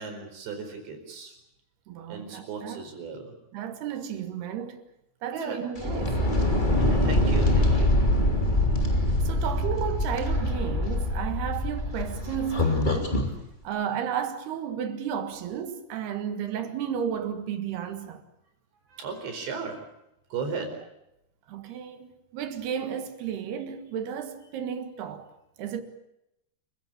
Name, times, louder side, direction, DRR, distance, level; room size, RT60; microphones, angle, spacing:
voice 1, 0.0-1.3 2.1-3.3 5.3-5.6 6.8-7.9 18.9-19.9 20.3-20.7, right 5 dB, 90° right, 6.9 m, -36 dB
voice 2, 1.9-2.8 3.5-4.8 5.2-6.2 9.2-13.2 13.7-18.2 21.5-25.3 25.6-25.8, right 8 dB, 70° right, 3.6 m, -33 dB
sound 1, 5.7-13.3, left 1 dB, 15° left, 2.7 m, -24 dB
28.5 x 16.0 x 8.7 m
omnidirectional pair, 4.9 m